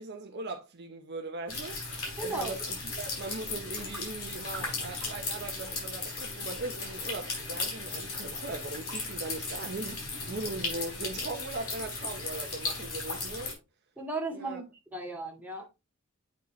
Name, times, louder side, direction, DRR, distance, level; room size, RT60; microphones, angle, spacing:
voice 1, 0.0-1.8 2.2-13.6 14.3-14.6, right 3 dB, 50° right, 0.8 m, -39 dB
sound 1, 1.5-13.5, left 3 dB, 90° left, 4.2 m, -36 dB
voice 2, 2.2-2.5 14.0-14.6 14.9-15.7, right 2 dB, 10° right, 1.8 m, -35 dB
8.4 x 4.4 x 3.1 m
head